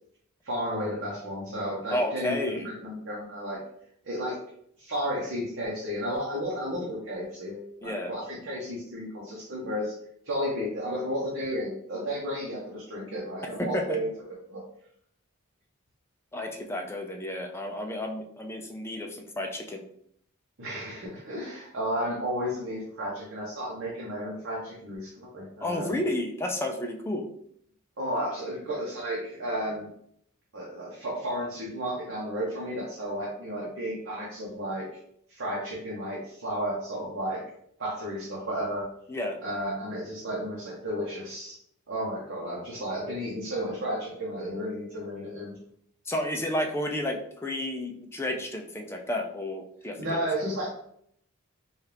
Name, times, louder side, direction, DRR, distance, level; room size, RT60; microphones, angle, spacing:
voice 1, 0.4-3.6 4.0-4.4 4.8-9.9 10.2-14.1 14.5-14.6 20.6-25.9 28.0-29.9 30.5-34.9 35.3-37.4 37.8-38.9 39.4-41.6 41.9-45.5 50.0-50.7, equal, 60° right, -5 dB, 0.9 m, -33 dB
voice 2, 1.9-2.7 7.8-8.1 13.6-14.0 16.3-19.8 25.6-27.2 39.1-39.4 46.1-50.2, left 1 dB, 10° left, 2 dB, 0.4 m, -31 dB
4.2 x 2.4 x 3.3 m, 0.69 s
head